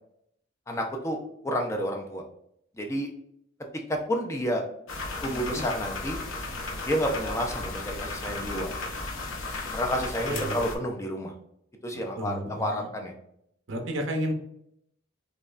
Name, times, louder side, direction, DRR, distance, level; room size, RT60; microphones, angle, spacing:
voice 1, 0.7-1.2 1.4-2.2 2.8-3.1 3.9-4.6 5.2-6.2 6.9-8.7 9.7-11.3 11.8-13.1, equal, 15° left, 2 dB, 0.4 m, -30 dB
sound 1, 4.9-10.8, left 3 dB, 85° left, 0.6 m, -35 dB
voice 2, 5.3-5.6 9.9-10.6 12.2-12.9 13.7-14.3, equal, 70° right, 3 dB, 0.7 m, -33 dB
5.2 x 2.2 x 2.4 m, 0.73 s
head